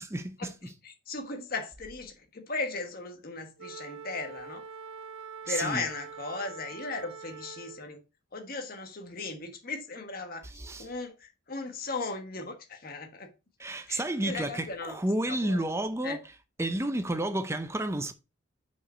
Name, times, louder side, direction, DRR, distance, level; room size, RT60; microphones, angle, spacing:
voice 1, 0.1-0.5 5.5-5.8 10.6-10.9 13.6-16.2 16.6-18.1, right 1 dB, 15° right, 0.6 m, -31 dB
voice 2, 0.8-4.7 5.4-8.0 8.3-10.5 10.8-13.3 13.9-15.0 15.3-15.6 16.0-16.2, left 3 dB, 45° left, 1.3 m, -37 dB
Wind instrument woodwind instrument, 3.6-7.9, right 6 dB, 80° right, 0.5 m, -44 dB
5.9 x 4.9 x 4.3 m
head